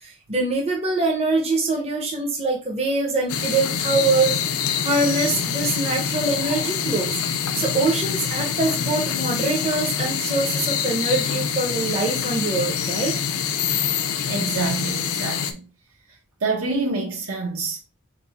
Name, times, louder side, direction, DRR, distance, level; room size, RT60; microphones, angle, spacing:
voice 1, 0.0-7.1 7.5-13.1, right 3 dB, 30° right, 0.7 m, -24 dB
sound 1, 3.3-15.5, left 7 dB, 75° left, 0.5 m, -25 dB
voice 2, 14.3-15.6 16.4-17.8, right 3 dB, 80° right, 1.4 m, -27 dB
3.8 x 2.5 x 4.1 m
head